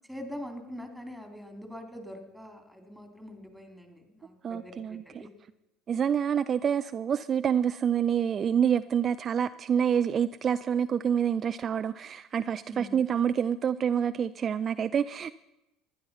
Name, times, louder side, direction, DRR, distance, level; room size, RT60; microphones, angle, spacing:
voice 1, 0.1-5.3 12.7-13.0, left 1 dB, ahead, 3.3 m, -43 dB
voice 2, 4.4-5.0 5.9-15.3, right 8 dB, 40° right, 0.4 m, -27 dB
15.5 x 11.0 x 5.7 m
supercardioid pair, 90°, 0 cm